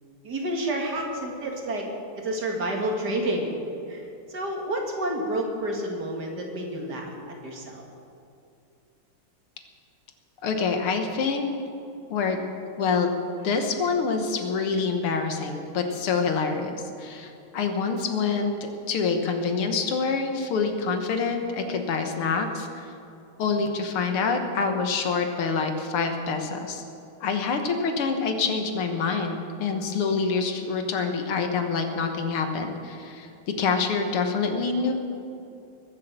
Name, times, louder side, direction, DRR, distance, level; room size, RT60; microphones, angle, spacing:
voice 1, 0.2-1.9 2.2-3.5 3.9-7.8, right 1 dB, 50° right, 1 dB, 2.3 m, -29 dB
voice 2, 10.4-11.4 12.1-12.4 12.8-13.1 13.4-22.9 23.4-26.8 27.2-33.3 33.6-34.9, left 5 dB, 80° left, 5 dB, 2.2 m, -26 dB
21.5 x 7.9 x 6.7 m, 2.6 s
omnidirectional pair, 2.4 m